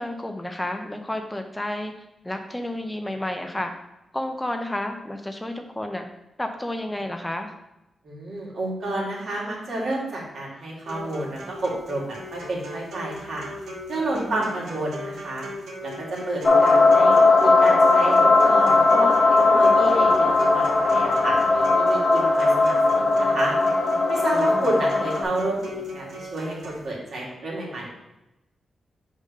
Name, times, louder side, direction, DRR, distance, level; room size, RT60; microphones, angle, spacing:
voice 1, 0.0-1.9 2.2-3.7 4.1-6.1 6.4-7.5 14.1-14.4 24.3-24.7, left 1 dB, 10° left, 5 dB, 0.5 m, -31 dB
voice 2, 8.0-13.5 13.9-15.5 15.8-17.1 17.4-23.6 24.1-25.6 25.9-27.9, right 2 dB, 65° right, -3 dB, 2.0 m, -30 dB
sound 1, 10.9-26.9, equal, 90° right, 1.2 m, -38 dB
sound 2, 16.4-25.2, left 3 dB, 35° left, 1.0 m, -18 dB
5.1 x 3.8 x 5.2 m, 0.93 s
cardioid pair, 105°, 0 cm